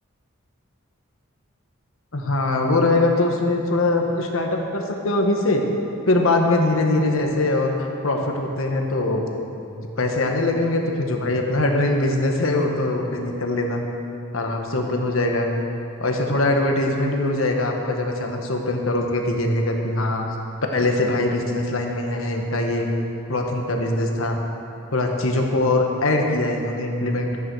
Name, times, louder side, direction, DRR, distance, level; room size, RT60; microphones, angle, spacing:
voice 1, 2.1-5.6 6.1-7.7 8.0-9.2 9.8-13.8 14.3-15.5 16.0-20.2 20.7-22.9 23.3-24.4 24.9-27.5, left 2 dB, 75° left, 2 dB, 1.4 m, -22 dB
14.0 x 9.7 x 4.8 m, 2.7 s
head